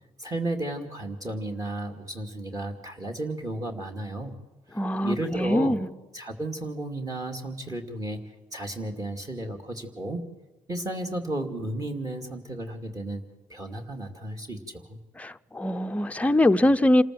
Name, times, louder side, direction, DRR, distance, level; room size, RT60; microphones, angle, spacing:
voice 1, 0.2-4.4 5.0-5.8 6.1-8.2 8.5-10.2 10.7-13.2 13.5-15.0, right 1 dB, 25° right, 2.4 m, -33 dB
voice 2, 4.7-5.9 15.2-17.0, left 1 dB, 10° left, 0.6 m, -23 dB
27.0 x 14.0 x 7.7 m
cardioid pair, 110°, 14 cm